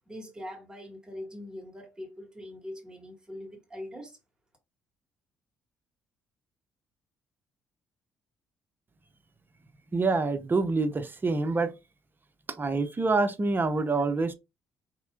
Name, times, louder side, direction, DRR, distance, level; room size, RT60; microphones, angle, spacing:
voice 1, 0.1-4.2, left 1 dB, 10° right, 1.8 m, -42 dB
voice 2, 9.9-11.7 12.6-14.3, right 3 dB, 30° right, 0.7 m, -26 dB
4.3 x 2.9 x 2.4 m
supercardioid pair, 60°, 7 cm